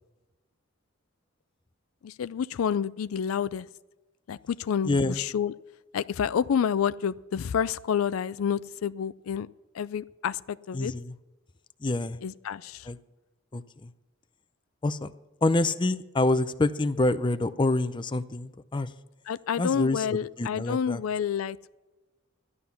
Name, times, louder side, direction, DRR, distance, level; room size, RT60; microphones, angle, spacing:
voice 1, 2.0-3.7 4.3-5.5 5.9-9.5 9.7-10.9 12.2-12.9 19.3-21.6, left 7 dB, 90° left, 16 dB, 0.4 m, -29 dB
voice 2, 4.9-5.2 10.7-11.1 11.8-12.2 12.9-13.0 13.5-13.9 14.8-15.1 15.4-18.9 19.6-21.0, left 2 dB, 25° left, 11 dB, 0.5 m, -27 dB
13.5 x 11.0 x 5.8 m, 1.1 s
head